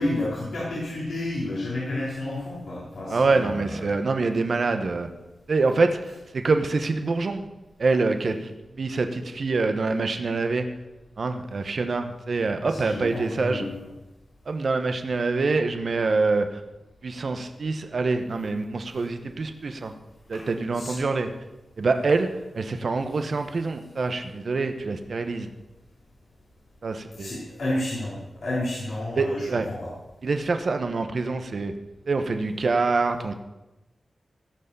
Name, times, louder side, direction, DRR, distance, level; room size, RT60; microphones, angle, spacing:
voice 1, 0.0-4.0 12.7-13.8 20.3-20.4 20.7-21.0 27.1-29.9, left 1 dB, 80° left, -8 dB, 3.8 m, -31 dB
voice 2, 3.1-5.1 5.5-7.4 7.8-10.7 11.2-13.7 14.4-16.6 17.0-19.9 20.3-21.3 21.8-22.3 22.5-25.5 26.8-27.3 29.2-29.7 30.2-31.7 32.1-33.3, right 3 dB, 65° right, 7 dB, 1.1 m, -25 dB
16.5 x 5.6 x 6.9 m, 1.0 s
cardioid pair, 55°, 0 cm